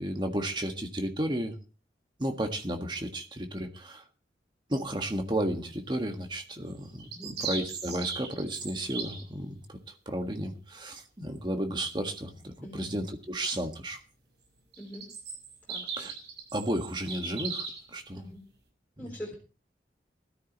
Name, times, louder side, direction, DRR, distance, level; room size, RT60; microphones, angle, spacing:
voice 1, 0.0-1.5 2.2-4.0 4.7-9.8 10.0-14.0 16.0-16.1 16.5-18.2 19.0-19.1, right 1 dB, 25° right, 5 dB, 1.7 m, -33 dB
sound 1, 6.7-9.2 14.7-17.9, right 5 dB, 70° right, 5.3 m, -38 dB
voice 2, 19.0-19.4, equal, 10° left, -3 dB, 3.7 m, -42 dB
19.0 x 13.5 x 3.0 m, 0.35 s
head